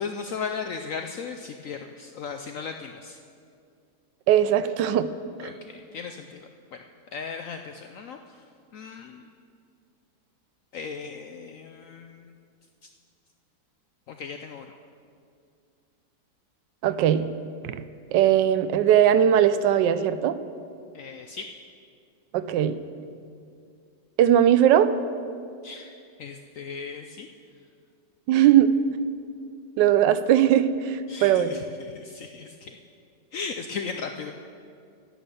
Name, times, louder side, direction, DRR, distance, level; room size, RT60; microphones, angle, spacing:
voice 1, 0.0-3.2 5.4-6.8 7.1-8.4 8.7-9.3 10.7-12.3 14.1-14.7 20.9-21.5 25.6-27.3 31.1-32.8 33.3-34.3, left 5 dB, 75° left, 5 dB, 0.7 m, -37 dB
voice 2, 4.3-5.1 16.8-17.3 17.6-17.8 18.1-20.3 22.3-22.8 24.2-24.9 28.3-28.7 29.8-31.6, right 10 dB, 85° right, 12 dB, 1.2 m, -19 dB
11.0 x 8.8 x 6.8 m, 2.3 s
omnidirectional pair, 1.9 m